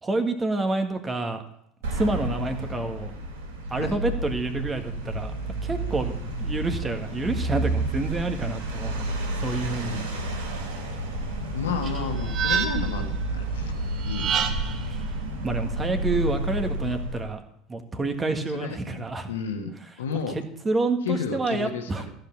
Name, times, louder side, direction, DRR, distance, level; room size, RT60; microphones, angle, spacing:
voice 1, 0.0-1.4 1.9-3.1 3.7-5.3 5.6-9.1 9.4-10.1 15.4-17.4 17.7-19.3 20.3-22.0, right 3 dB, 20° right, 7 dB, 1.7 m, -28 dB
sound 1, 1.8-17.3, right 1 dB, 70° right, 3.3 m, -30 dB
voice 2, 11.5-13.7 14.1-14.5 18.5-20.4 21.0-22.1, left 5 dB, 75° left, 5 dB, 1.3 m, -32 dB
sound 2, 11.8-13.1 14.0-14.9, right 7 dB, 45° right, 1.4 m, -28 dB
14.0 x 5.8 x 7.4 m, 0.72 s
figure-of-eight pair, 75°, 0 cm